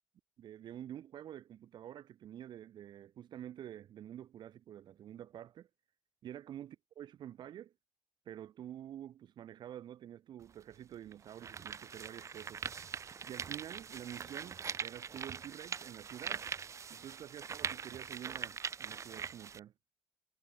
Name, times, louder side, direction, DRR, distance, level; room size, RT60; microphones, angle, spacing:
voice 1, 0.4-5.7 6.2-7.7 8.3-12.6 13.2-16.4 16.9-19.7, right 11 dB, 75° right, 5.8 m, -48 dB
sound 1, 10.4-10.5 11.1-19.6, right 6 dB, 40° right, 1.8 m, -42 dB
cardioid pair, 140°, 8 cm